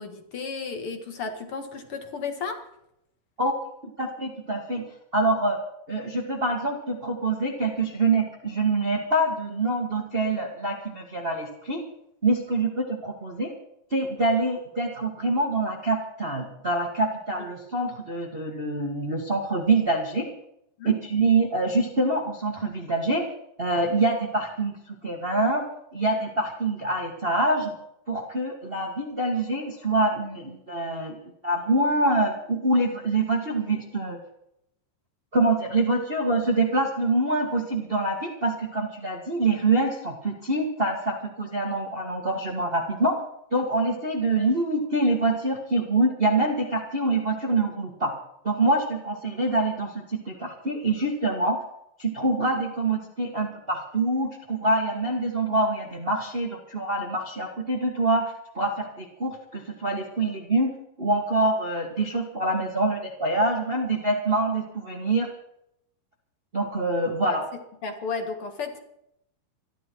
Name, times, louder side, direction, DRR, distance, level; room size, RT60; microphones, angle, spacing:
voice 1, 0.0-2.6 20.8-20.9 67.3-67.4 67.8-68.8, left 5 dB, 45° left, 5 dB, 2.2 m, -33 dB
voice 2, 4.0-4.8 5.1-5.6 5.9-11.8 12.2-13.5 13.9-20.2 20.8-23.3 23.6-25.6 25.9-27.7 28.1-31.2 31.4-34.2 35.3-43.2 43.5-48.1 48.4-51.6 52.0-60.7 61.0-65.3 66.5-67.5, right 2 dB, 65° right, 1 dB, 0.5 m, -25 dB
26.0 x 11.0 x 4.7 m, 0.79 s
omnidirectional pair, 4.5 m